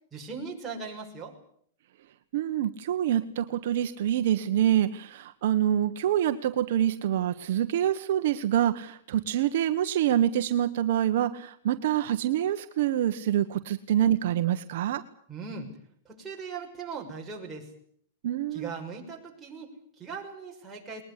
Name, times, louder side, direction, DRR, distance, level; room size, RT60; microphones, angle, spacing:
voice 1, 0.1-1.4 15.3-15.7 16.0-17.7 18.5-21.0, right 5 dB, 10° right, -2 dB, 6.1 m, -39 dB
voice 2, 2.3-15.0 18.2-18.7, right 11 dB, 60° right, 9 dB, 1.3 m, -26 dB
21.5 x 20.5 x 9.8 m, 0.64 s
supercardioid pair, 155°, 0 cm